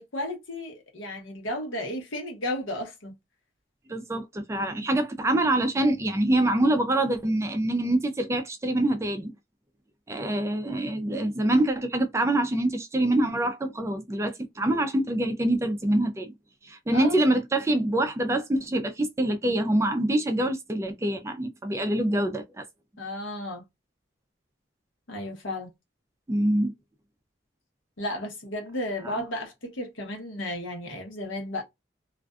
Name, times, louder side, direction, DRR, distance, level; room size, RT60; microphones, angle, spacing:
voice 1, 0.0-3.1 16.9-17.2 23.0-23.6 25.1-25.7 28.0-31.6, left 1 dB, 80° left, 1.0 m, -33 dB
voice 2, 3.9-9.3 10.1-16.3 16.6-22.6 26.3-26.7 29.0-29.2, right 1 dB, 15° right, 0.3 m, -25 dB
2.4 x 2.2 x 2.3 m
head